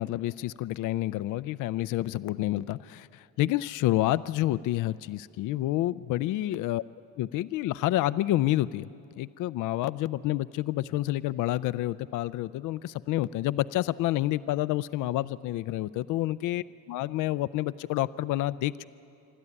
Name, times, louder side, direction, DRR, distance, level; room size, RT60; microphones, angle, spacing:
voice 1, 0.0-6.8 7.2-8.9 9.2-16.6 16.9-18.8, left 15 dB, 85° left, 17 dB, 0.5 m, -29 dB
26.5 x 12.0 x 9.8 m, 2.6 s
cardioid pair, 90°, 30 cm